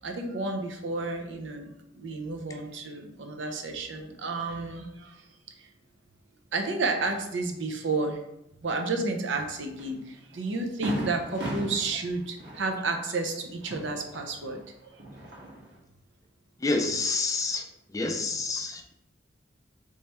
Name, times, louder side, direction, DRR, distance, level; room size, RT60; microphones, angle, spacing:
voice 1, 0.0-5.2 5.6-5.7 6.5-8.2 8.6-14.6, right 3 dB, 80° right, 4 dB, 0.7 m, -31 dB
Fireworks, 9.8-9.9 10.3-10.4 10.8-14.6 14.9-15.8, right 1 dB, 60° right, 1.1 m, -37 dB
voice 2, 16.6-17.6 17.9-18.9, left 3 dB, 20° left, 4 dB, 0.4 m, -28 dB
3.4 x 3.2 x 4.2 m, 0.84 s
head